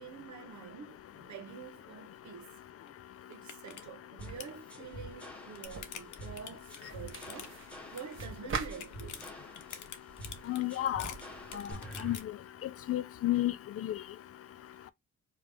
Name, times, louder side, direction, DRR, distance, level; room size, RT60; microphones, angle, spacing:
voice 1, 0.0-2.5 3.3-7.5 7.9-9.3, right 6 dB, 80° right, 1.1 m, -47 dB
sound 1, 2.9-3.0 3.3-3.8 4.1-4.6 5.2-7.7 8.0-8.4 8.6-12.2, left 8 dB, 90° left, 0.9 m, -46 dB
sound 2, 4.2-12.2, right 1 dB, 5° left, 1.1 m, -47 dB
sound 3, 5.6-11.7, right 5 dB, 45° right, 1.0 m, -45 dB
voice 2, 10.5-11.1 12.0-12.2 12.6-13.5 13.8-14.0, left 14 dB, 55° left, 0.5 m, -31 dB
4.8 x 2.5 x 3.4 m
wide cardioid pair, 145°, 29 cm